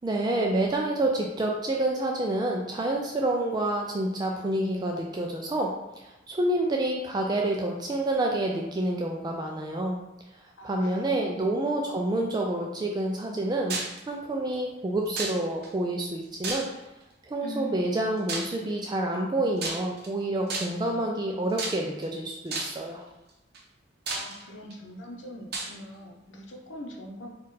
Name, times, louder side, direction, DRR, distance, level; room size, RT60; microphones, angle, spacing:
voice 1, 0.0-10.0 10.6-16.7 17.3-23.0, right 1 dB, 20° right, 0 dB, 0.3 m, -28 dB
voice 2, 10.6-11.4 17.4-17.9 24.1-27.3, left 1 dB, 85° left, 0 dB, 0.8 m, -42 dB
sound 1, 13.7-14.0 15.2-15.7 16.4-17.0 18.3-18.6 19.6-20.1 20.5-20.9 21.6-22.0 22.5-22.9 23.5-23.6 24.1-24.7 25.5-25.7, right 3 dB, 60° right, 0.7 m, -32 dB
4.2 x 2.4 x 4.0 m, 0.97 s
head